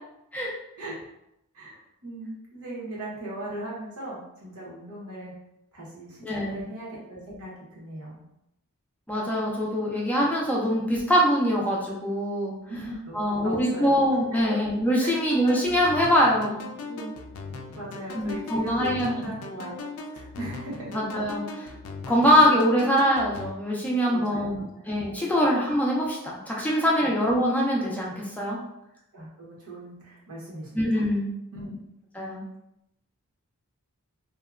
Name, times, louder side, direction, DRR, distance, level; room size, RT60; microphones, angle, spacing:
voice 1, 1.5-5.3 5.7-8.2 10.1-10.2 12.7-14.0 14.4-14.5 15.0-15.2 16.9-17.1 17.8-19.9 20.1-21.0 24.1-24.9 25.3-25.5 27.0-27.1 29.1-31.0 31.5-31.8, right 1 dB, 75° right, -5 dB, 1.0 m, -38 dB
voice 2, 6.2-6.7 9.1-12.6 13.1-16.6 18.1-19.3 20.9-21.7 22.1-28.6 30.7-31.3 32.2-32.4, equal, 5° left, -4 dB, 0.4 m, -23 dB
sound 1, 15.3-23.5, left 3 dB, 90° left, 0.3 m, -39 dB
2.8 x 2.1 x 2.4 m, 0.82 s
head